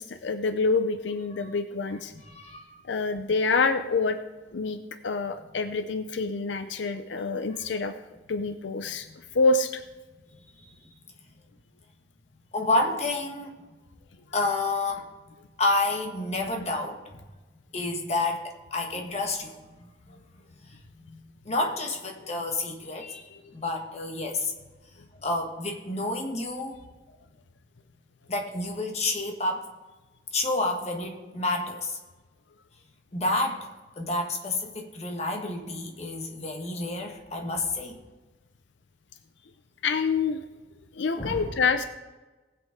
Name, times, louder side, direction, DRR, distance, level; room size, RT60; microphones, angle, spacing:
voice 1, 0.0-2.1 2.8-4.2 4.5-4.8 5.0-7.9 8.3-9.1 9.3-9.8 23.5-23.6 39.8-40.4 41.0-41.8, left 4 dB, 85° left, 9 dB, 0.6 m, -26 dB
voice 2, 2.1-2.8 6.8-6.9 9.1-9.2 10.4-10.9 12.5-13.6 14.3-15.1 15.6-17.0 17.7-20.2 20.7-24.5 25.2-26.8 28.3-29.7 30.3-32.0 33.1-33.7 34.0-38.0 41.2-41.5, left 2 dB, 35° left, 2 dB, 1.5 m, -30 dB
19.5 x 7.8 x 3.6 m, 1.2 s
head